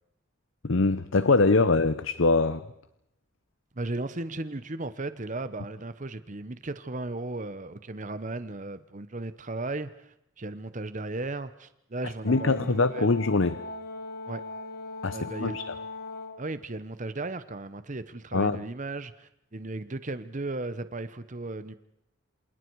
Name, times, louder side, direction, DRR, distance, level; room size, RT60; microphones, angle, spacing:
voice 1, 0.6-2.7 12.2-13.6 15.0-15.7 18.3-18.6, left 3 dB, 75° left, 14 dB, 0.8 m, -23 dB
voice 2, 3.8-13.1 14.3-14.4 15.1-15.6 16.4-21.8, right 2 dB, 40° right, 12 dB, 0.9 m, -36 dB
Brass instrument, 12.3-16.5, left 2 dB, 50° left, 2.0 m, -39 dB
28.0 x 27.5 x 4.7 m, 0.77 s
head